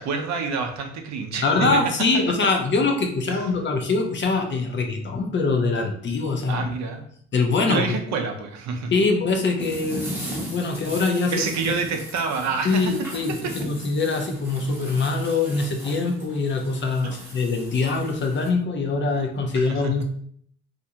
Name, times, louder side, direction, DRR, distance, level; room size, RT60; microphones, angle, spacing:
voice 1, 0.0-1.8 3.3-3.4 6.5-7.1 7.7-8.9 11.3-12.9 13.3-13.5 19.5-19.9, right 5 dB, 65° right, 4 dB, 0.5 m, -27 dB
voice 2, 1.4-6.7 7.3-7.9 8.9-11.4 12.6-20.0, left 3 dB, 40° left, 3 dB, 0.5 m, -23 dB
sound 1, 9.6-18.5, right 1 dB, 10° right, 0.7 m, -38 dB
2.5 x 2.2 x 2.8 m, 0.63 s
cardioid pair, 90°, 30 cm